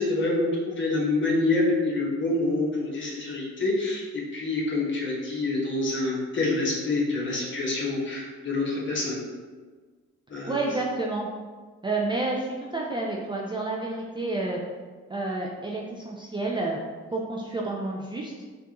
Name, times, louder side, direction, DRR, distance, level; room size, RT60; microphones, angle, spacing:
voice 1, 0.0-4.0 4.3-9.2 10.3-10.6, left 2 dB, 40° left, -4 dB, 1.2 m, -26 dB
voice 2, 10.5-11.3 11.8-14.6 15.1-16.8 17.1-18.3, right 2 dB, 15° right, -2 dB, 0.4 m, -29 dB
4.5 x 2.4 x 2.9 m, 1.4 s
cardioid pair, 90°, 30 cm